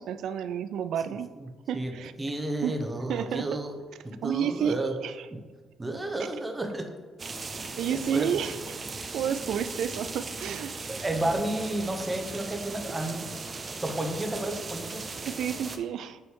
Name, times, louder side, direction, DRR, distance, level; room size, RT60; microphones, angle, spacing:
voice 1, 0.0-1.3 1.7-2.1 2.6-2.8 3.1-3.6 4.2-5.3 7.8-8.8 9.1-10.9 15.2-16.2, right 8 dB, 75° right, 12 dB, 0.3 m, -31 dB
voice 2, 2.2-3.7 4.0-4.9 5.8-6.9 7.6-8.3 10.9-13.3 13.8-15.0, right 1 dB, 20° right, 4 dB, 0.8 m, -31 dB
sound 1, 7.2-15.8, right 3 dB, 35° right, 0.6 m, -38 dB
8.2 x 3.2 x 4.7 m, 1.5 s
cardioid pair, 90°, 0 cm